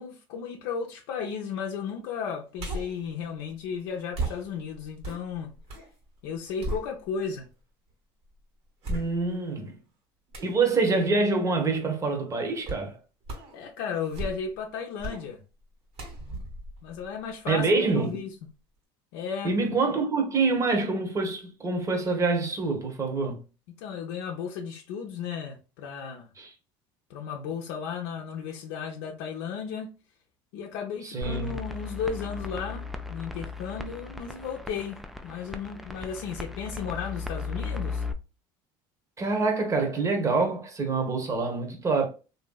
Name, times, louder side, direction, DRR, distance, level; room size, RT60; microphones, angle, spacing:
voice 1, 0.0-5.5 6.2-7.5 13.5-15.4 16.2-16.5 16.8-18.3 19.1-19.5 23.7-26.3 27.1-29.9 30.5-38.0, left 6 dB, 80° left, 0.5 m, -34 dB
sound 1, 2.6-3.0 4.1-5.9 6.3-7.4 7.9-8.0 8.8-9.5 10.3-10.6 12.6-12.9 13.2-13.6 14.0-14.6 15.0-15.3 15.9-17.6 18.0-18.1, right 2 dB, 60° right, 1.4 m, -36 dB
voice 2, 8.8-9.8 10.4-13.0 17.5-18.2 19.4-23.4 26.4-26.5 31.0-31.5 39.2-42.1, right 3 dB, 25° right, 0.9 m, -26 dB
sound 2, 31.2-38.1, left 4 dB, ahead, 0.3 m, -36 dB
2.9 x 2.6 x 2.2 m
supercardioid pair, 95°, 12 cm